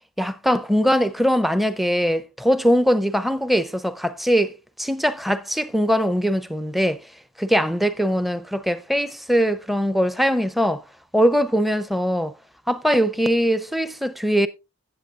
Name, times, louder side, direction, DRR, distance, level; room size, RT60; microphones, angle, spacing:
voice 1, 0.2-7.0 7.4-10.8 11.1-12.3 12.7-14.5, equal, ahead, 0.5 m, -21 dB
16.5 x 8.0 x 2.4 m
head